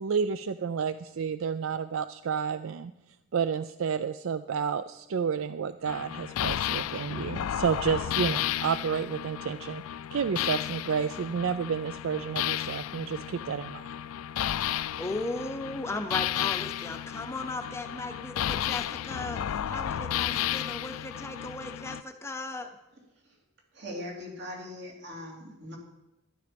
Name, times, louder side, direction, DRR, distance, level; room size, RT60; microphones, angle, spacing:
voice 1, 0.0-2.9 3.3-9.8 10.1-13.9, right 6 dB, 70° right, 12 dB, 0.4 m, -30 dB
sound 1, 5.9-22.0, left 11 dB, 90° left, 0.3 m, -33 dB
voice 2, 15.0-22.7, left 2 dB, 10° left, 7 dB, 0.6 m, -36 dB
voice 3, 23.7-25.8, left 1 dB, 55° right, -1 dB, 3.2 m, -40 dB
12.5 x 11.5 x 5.2 m, 0.93 s
head